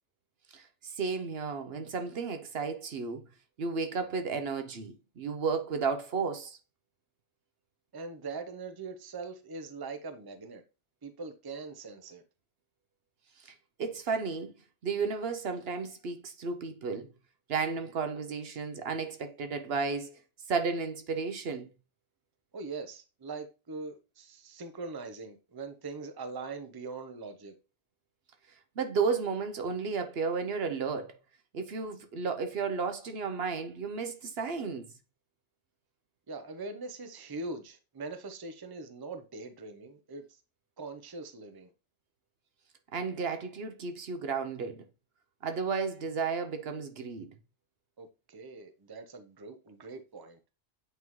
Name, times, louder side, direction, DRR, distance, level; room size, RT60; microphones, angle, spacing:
voice 1, 0.5-3.2 3.6-6.6 13.4-14.5 14.8-17.1 17.5-20.2 20.5-21.7 28.8-31.2 31.5-34.9 42.9-44.9 45.4-47.3, right 5 dB, 65° right, 0.9 m, -33 dB
voice 2, 7.9-10.6 11.0-12.2 22.5-27.5 36.3-40.2 40.8-41.7 48.0-50.4, right 3 dB, 25° right, 0.7 m, -42 dB
8.3 x 3.7 x 3.1 m
omnidirectional pair, 1.2 m